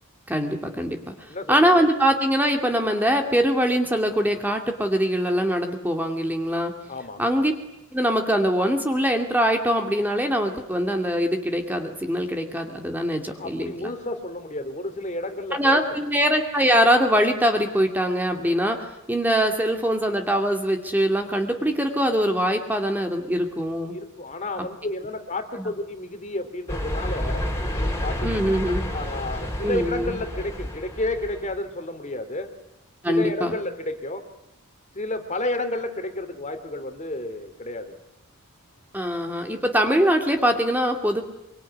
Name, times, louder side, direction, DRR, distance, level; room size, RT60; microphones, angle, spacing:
voice 1, 0.3-6.7 7.2-7.5 7.9-13.9 15.5-24.0 25.6-25.7 28.2-28.9 29.6-30.1 33.0-33.5 38.9-41.2, equal, 10° right, 4 dB, 2.4 m, -23 dB
voice 2, 1.3-1.9 6.9-7.3 13.4-16.0 23.9-32.5 33.1-34.3 34.9-38.0, left 2 dB, 35° left, 7 dB, 3.0 m, -31 dB
sound 1, 26.7-31.6, left 1 dB, 10° left, 4.4 m, -29 dB
24.5 x 24.5 x 9.8 m, 0.87 s
head